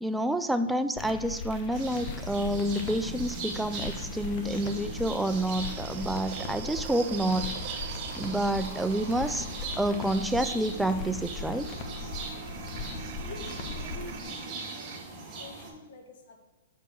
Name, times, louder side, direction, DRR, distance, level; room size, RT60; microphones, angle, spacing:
voice 1, 0.0-7.5 8.2-9.5 9.8-11.7, right 1 dB, 5° right, 9 dB, 0.4 m, -29 dB
sound 1, 1.0-14.2, left 3 dB, 35° left, 1.0 m, -40 dB
sound 2, 1.4-3.8 4.6-15.0, right 8 dB, 55° right, 0.8 m, -45 dB
sound 3, 1.7-15.7, right 3 dB, 25° right, 2.3 m, -40 dB
voice 2, 13.2-15.0 15.4-16.4, left 3 dB, 55° left, 3 dB, 1.4 m, -47 dB
6.0 x 4.6 x 6.5 m, 1.2 s
hypercardioid pair, 130°, 0 cm